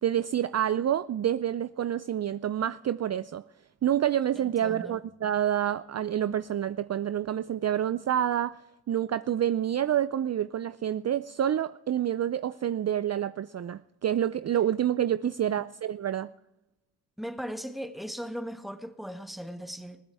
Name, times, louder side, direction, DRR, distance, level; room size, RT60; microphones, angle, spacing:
voice 1, 0.0-3.4 3.8-8.6 8.9-16.3, right 10 dB, 40° right, 0.5 m, -28 dB
voice 2, 4.4-5.0 17.2-20.0, equal, ahead, 1.8 m, -38 dB
21.0 x 15.0 x 3.5 m
supercardioid pair, 45°, 39 cm